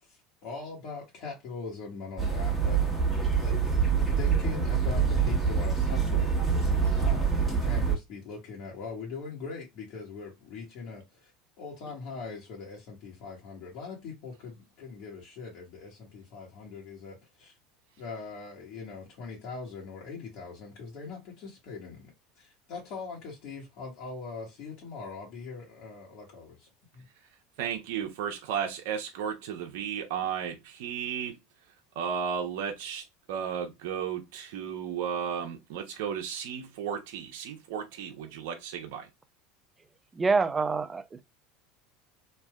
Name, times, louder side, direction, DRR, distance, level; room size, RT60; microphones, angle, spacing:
voice 1, 0.0-2.9 3.4-11.3 11.6-17.6 18.0-22.1 22.3-27.1, left 4 dB, 60° left, 1.3 m, -41 dB
sound 1, 2.2-8.0, right 6 dB, ahead, 1.3 m, -25 dB
voice 2, 27.6-31.3 32.0-39.1, right 8 dB, 75° right, 0.6 m, -34 dB
voice 3, 40.1-41.2, right 4 dB, 20° right, 0.4 m, -26 dB
3.3 x 2.6 x 2.2 m
supercardioid pair, 110°, 0 cm